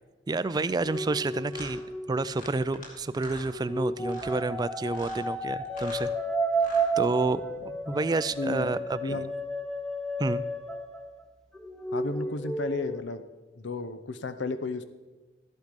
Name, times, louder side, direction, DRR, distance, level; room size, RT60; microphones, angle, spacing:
voice 1, 0.3-1.8 2.1-6.1 7.0-7.4 7.9-9.2 10.2-10.4, right 3 dB, 20° right, 15 dB, 0.3 m, -29 dB
sound 1, 0.8-0.9 1.5-1.7 2.3-2.9 3.1-3.5 4.0-4.4 4.9-5.2 5.6-6.1 6.5-6.9, left 1 dB, 45° left, 2.5 m, -45 dB
sound 2, 0.8-2.9 3.5-11.2 11.5-13.0, right 2 dB, 5° left, 0.8 m, -32 dB
voice 2, 8.4-9.3 11.9-13.2 13.6-14.8, left 3 dB, 70° left, 12 dB, 0.7 m, -33 dB
13.5 x 8.1 x 5.2 m, 1.2 s
head